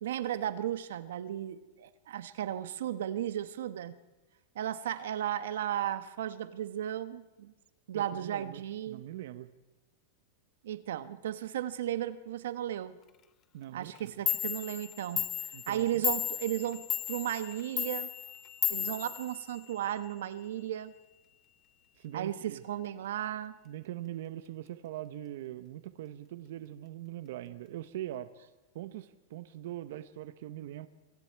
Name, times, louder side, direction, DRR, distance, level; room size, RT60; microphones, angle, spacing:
voice 1, 0.0-4.0 4.5-7.5 7.9-9.0 10.6-13.0 13.7-15.3 15.7-18.1 18.7-20.9 22.1-23.6, right 11 dB, 80° right, 13 dB, 1.1 m, -35 dB
voice 2, 7.9-9.5 13.5-14.1 15.5-16.1 22.0-22.6 23.6-28.3 28.7-30.9, right 13 dB, 60° right, 12 dB, 1.0 m, -42 dB
Clock, 13.9-14.0 14.3-19.9, left 10 dB, 25° left, 0.9 m, -34 dB
25.0 x 25.0 x 4.7 m, 1.2 s
supercardioid pair, 170°, 0 cm